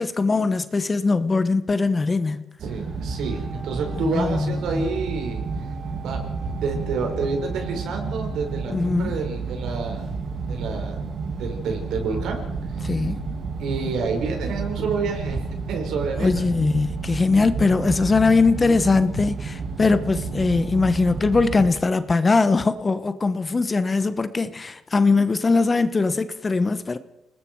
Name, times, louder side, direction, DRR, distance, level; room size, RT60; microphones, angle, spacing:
voice 1, 0.0-2.5 4.0-4.8 8.7-9.2 12.8-13.3 16.2-27.0, left 3 dB, 25° left, 1.1 m, -21 dB
sound 1, 2.6-21.7, right 4 dB, 55° right, 2.7 m, -31 dB
voice 2, 2.6-5.4 6.0-6.3 6.6-10.1 10.5-11.1 11.4-12.4 12.7-12.8 13.6-16.5, right 4 dB, 80° right, 5.4 m, -29 dB
Wind instrument woodwind instrument, 3.0-9.0, right 6 dB, 35° right, 5.6 m, -46 dB
29.5 x 19.5 x 4.7 m
cardioid pair, 125°, 0 cm